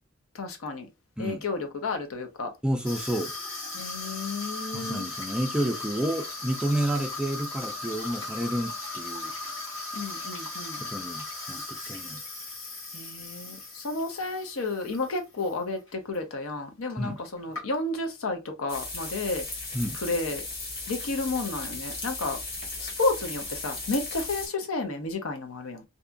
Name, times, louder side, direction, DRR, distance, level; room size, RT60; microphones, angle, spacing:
voice 1, 0.3-0.9 1.2-2.5 3.7-5.1 9.9-10.8 12.9-19.5 19.9-20.4 20.9-22.4 22.8-25.8, left 3 dB, 85° left, 0.7 m, -31 dB
voice 2, 2.6-3.3 4.7-9.3 10.8-12.2 17.0-17.2 19.7-20.0, right 1 dB, 5° right, 0.3 m, -30 dB
Water tap faucet / Sink (filling or washing), 2.8-15.5 15.9-16.2 16.9-17.0 17.2-18.1, left 2 dB, 65° left, 1.2 m, -37 dB
sound 1, 18.7-24.5, left 3 dB, 50° left, 1.2 m, -36 dB
2.7 x 2.3 x 2.5 m
head